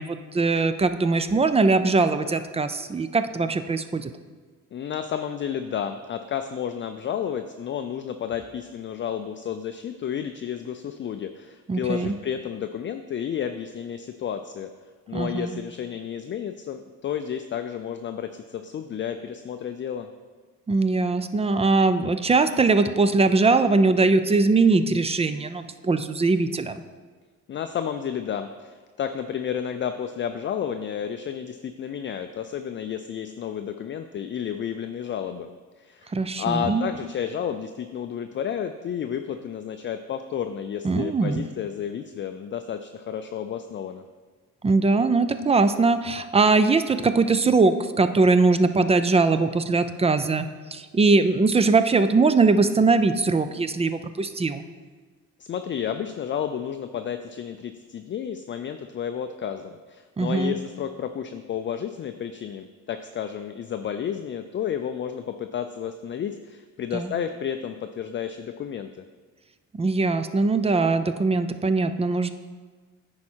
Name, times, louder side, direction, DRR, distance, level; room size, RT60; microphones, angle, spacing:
voice 1, 0.0-4.1 11.7-12.1 15.1-15.5 20.7-26.8 36.1-36.9 40.8-41.4 44.6-50.5 50.7-54.6 60.2-60.6 66.9-67.1 69.8-72.3, right 3 dB, 20° right, 10 dB, 0.4 m, -21 dB
voice 2, 4.7-14.7 15.1-20.1 27.5-35.5 35.8-44.1 55.4-69.0, left 8 dB, 40° left, 7 dB, 0.4 m, -31 dB
9.5 x 4.8 x 4.5 m, 1.4 s
cardioid pair, 90°, 30 cm